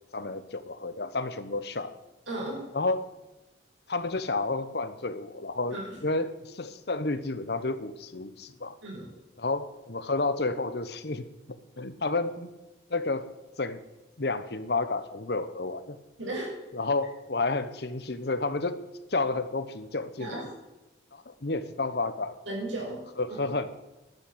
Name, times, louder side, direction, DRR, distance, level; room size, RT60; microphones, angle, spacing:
voice 1, 0.1-1.9 2.7-3.1 3.9-8.8 9.4-11.3 11.8-12.5 12.9-13.3 13.6-13.8 14.2-16.0 16.7-18.8 19.1-20.5 21.1-22.4 23.2-23.7, left 3 dB, 55° left, 12 dB, 1.0 m, -31 dB
voice 2, 2.3-2.6 5.7-6.0 8.8-9.1 16.2-16.5 20.2-20.4 22.5-23.0 23.3-23.4, right 2 dB, 80° right, -2 dB, 6.2 m, -35 dB
12.0 x 9.1 x 7.8 m, 1.1 s
head